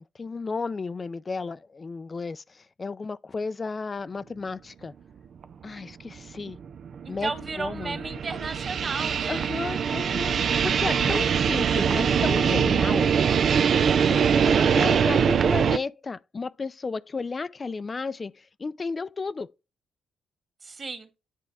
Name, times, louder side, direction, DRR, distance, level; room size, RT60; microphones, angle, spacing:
voice 1, 0.0-4.9 5.6-6.6 7.1-7.3 7.6-8.0 9.3-13.1 14.0-19.5, left 4 dB, 30° left, 0.5 m, -33 dB
sound 1, 5.4-5.5 6.1-15.8, right 7 dB, 55° right, 0.4 m, -23 dB
voice 2, 7.1-9.4 14.5-15.0 20.6-21.1, right 4 dB, 40° right, 2.1 m, -34 dB
10.0 x 3.8 x 3.4 m
cardioid pair, 90°, 0 cm